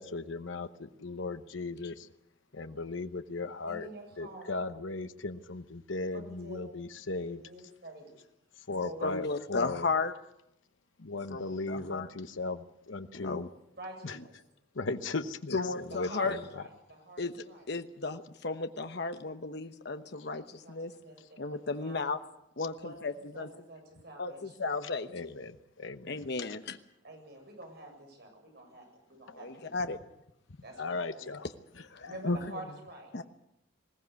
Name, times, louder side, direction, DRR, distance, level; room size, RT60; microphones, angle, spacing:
voice 1, 0.0-2.1 2.5-3.9 4.2-7.4 8.5-9.9 11.0-13.5 14.0-14.2 14.7-16.6 24.8-26.3 30.8-31.5 31.8-32.1, left 3 dB, 85° left, 10 dB, 1.0 m, -37 dB
voice 2, 3.6-4.5 6.1-6.7 7.2-8.1 8.8-9.1 13.8-14.3 15.9-16.3 16.5-17.6 20.0-20.1 20.4-20.8 21.0-22.1 22.8-22.9 23.3-24.6 27.0-29.7 30.6-31.0 31.4-31.5 32.0-33.1, right 1 dB, 55° right, 3 dB, 7.6 m, -48 dB
voice 3, 9.0-10.1 11.3-11.4 11.7-12.1 13.1-13.4 15.5-16.4 17.2-17.3 17.7-20.9 21.4-22.2 22.6-23.5 24.2-25.3 26.1-26.8 29.4-30.0 31.9-32.4 33.1-33.2, left 3 dB, 60° left, 8 dB, 1.1 m, -34 dB
20.5 x 18.0 x 8.3 m, 0.83 s
head